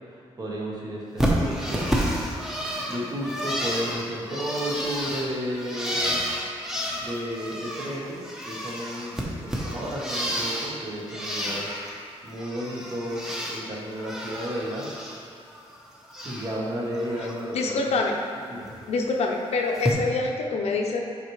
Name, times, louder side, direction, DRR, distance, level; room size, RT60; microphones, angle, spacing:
voice 1, 0.4-1.9 2.9-6.2 7.0-11.7 12.2-14.9 16.2-17.8 18.5-18.7, equal, 35° right, -4 dB, 1.3 m, -32 dB
Bird, 1.2-10.7 11.1-11.9 12.3-13.6 13.9-15.2 15.5-16.5 16.9-17.3 18.6-18.7 19.7-19.9, equal, 5° right, 0.9 m, -30 dB
voice 2, 17.5-18.2 18.9-21.0, left 3 dB, 75° left, 1 dB, 0.7 m, -25 dB
7.6 x 5.0 x 3.2 m, 2.4 s
wide cardioid pair, 125°, 11 cm